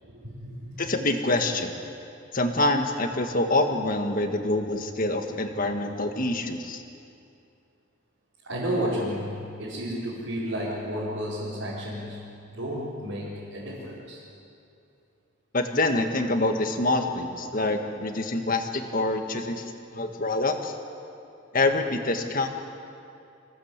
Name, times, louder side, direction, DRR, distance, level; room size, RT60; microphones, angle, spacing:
voice 1, 0.0-0.9 8.4-12.2 12.5-14.2, equal, 80° right, -9 dB, 5.1 m, -32 dB
voice 2, 0.8-1.8 2.3-6.8 15.5-19.6 19.9-20.7 21.5-22.5, left 2 dB, 45° left, 5 dB, 1.7 m, -26 dB
25.0 x 17.0 x 8.2 m, 2.6 s
head